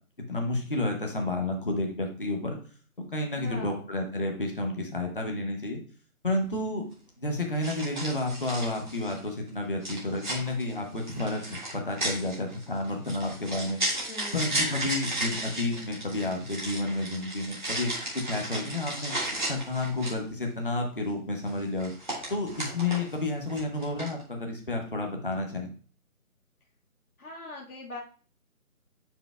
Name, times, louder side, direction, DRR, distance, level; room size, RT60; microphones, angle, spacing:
voice 1, 0.3-2.6 3.1-5.8 6.2-6.8 7.2-13.8 14.3-19.1 19.5-21.9 22.3-25.7, left 2 dB, 35° left, 2 dB, 0.9 m, -31 dB
voice 2, 3.3-3.8 14.1-14.6 27.2-28.0, left 3 dB, 70° left, -2 dB, 1.7 m, -41 dB
sound 1, 6.4-6.5 7.6-9.3 9.8-20.3 21.5-23.2 23.5-24.2, right 1 dB, 30° right, 1.7 m, -34 dB
9.4 x 4.9 x 2.2 m, 0.40 s
figure-of-eight pair, 175°, 44 cm